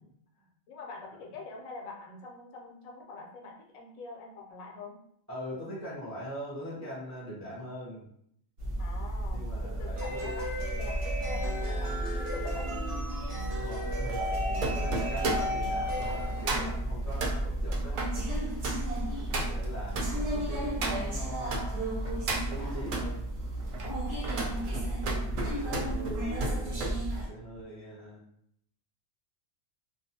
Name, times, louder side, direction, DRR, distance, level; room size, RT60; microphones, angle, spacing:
voice 1, 0.7-5.0 8.8-12.8 20.0-20.5 24.4-24.8 25.7-26.5, left 3 dB, 80° left, 1 dB, 1.0 m, -45 dB
voice 2, 5.3-8.1 9.3-10.3 13.5-18.0 19.2-21.8 22.5-23.3 25.0-28.2, equal, 15° right, -7 dB, 0.6 m, -42 dB
sound 1, 8.6-27.3, right 1 dB, 50° right, 0.9 m, -32 dB
sound 2, 11.0-21.6 22.0-23.1 23.6-27.0 27.3-27.6, right 3 dB, 85° right, 1.0 m, -36 dB
2.4 x 2.3 x 2.6 m, 0.70 s
omnidirectional pair, 1.4 m